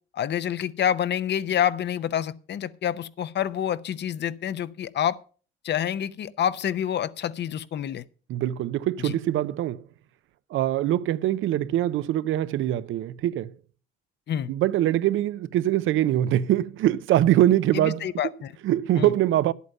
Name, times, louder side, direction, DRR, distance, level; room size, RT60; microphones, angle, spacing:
voice 1, 0.1-5.2 5.6-8.0 9.0-9.1 14.3-14.5 17.7-18.5 19.0-19.1, left 9 dB, 60° left, 0.7 m, -27 dB
voice 2, 8.3-9.9 10.5-13.5 14.5-18.1 18.6-19.5, right 13 dB, 80° right, 0.6 m, -23 dB
11.0 x 8.4 x 5.5 m
cardioid pair, 90°, 20 cm